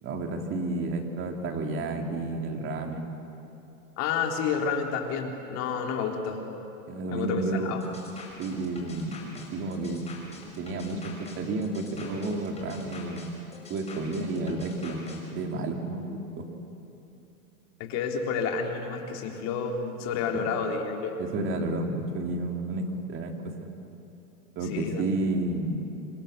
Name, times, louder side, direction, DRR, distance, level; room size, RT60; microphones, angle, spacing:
voice 1, 0.0-3.1 6.9-7.8 8.4-10.0 10.5-13.2 13.7-16.5 20.3-20.4 21.2-23.3 23.6-23.7 24.5-25.8, right 2 dB, 25° right, 3 dB, 3.1 m, -31 dB
voice 2, 4.0-6.4 7.1-7.8 17.8-21.2 24.7-25.0, left 6 dB, 35° left, 2 dB, 3.7 m, -30 dB
sound 1, 7.8-15.2, left 3 dB, 15° left, 6.2 m, -46 dB
28.0 x 26.5 x 6.8 m, 2.8 s
hypercardioid pair, 140°, 44 cm